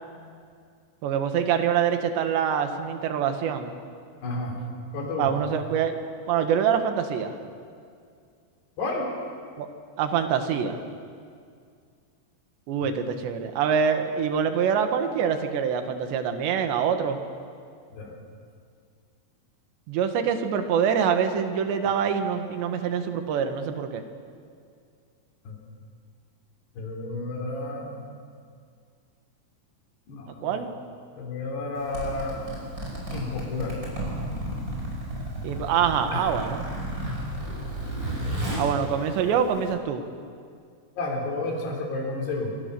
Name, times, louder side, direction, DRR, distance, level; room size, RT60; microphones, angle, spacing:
voice 1, 1.0-3.7 5.2-6.0 6.3-7.4 9.6-9.7 10.0-10.8 12.7-17.2 19.9-24.0 30.4-30.7 35.4-36.6 38.6-40.0, right 7 dB, 85° right, 7 dB, 3.8 m, -25 dB
voice 2, 4.2-4.6 4.9-5.3 8.8-9.1 12.8-12.9 17.9-18.1 25.5-25.6 26.8-28.1 30.1-30.6 31.2-32.6 33.1-33.8 36.1-36.3 38.3-38.6 41.0-42.5, left 2 dB, 70° left, 1 dB, 5.8 m, -31 dB
Zipper (clothing), 31.8-39.7, right 1 dB, 20° right, 5.9 m, -33 dB
26.5 x 23.0 x 6.9 m, 2.2 s
omnidirectional pair, 4.9 m